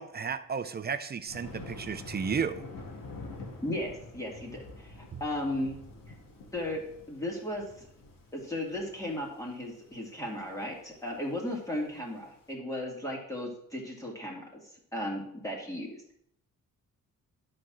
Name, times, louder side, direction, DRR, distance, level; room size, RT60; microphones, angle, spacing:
voice 1, 0.0-2.6 5.1-5.2, right 6 dB, 30° right, 11 dB, 0.5 m, -33 dB
Thunder, 1.3-12.4, left 2 dB, 80° left, 2.0 m, -47 dB
voice 2, 3.6-5.8 6.1-6.2 6.5-6.8 7.1-7.9 8.3-16.0, left 1 dB, 10° left, -1 dB, 2.2 m, -36 dB
11.0 x 4.3 x 6.3 m, 0.70 s
wide cardioid pair, 165°, 33 cm